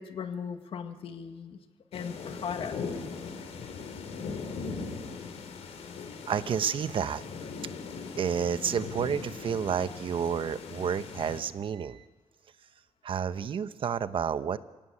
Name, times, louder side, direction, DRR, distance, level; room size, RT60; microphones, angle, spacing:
voice 1, 0.0-1.6 1.9-2.8, left 7 dB, 60° left, 7 dB, 1.9 m, -37 dB
sound 1, 1.9-11.4, left 5 dB, 80° left, 3.7 m, -40 dB
voice 2, 6.3-7.2 8.2-12.0 13.0-14.6, right 7 dB, 55° right, 12 dB, 0.9 m, -30 dB
29.5 x 17.5 x 8.6 m, 1.2 s
cardioid pair, 135°, 11 cm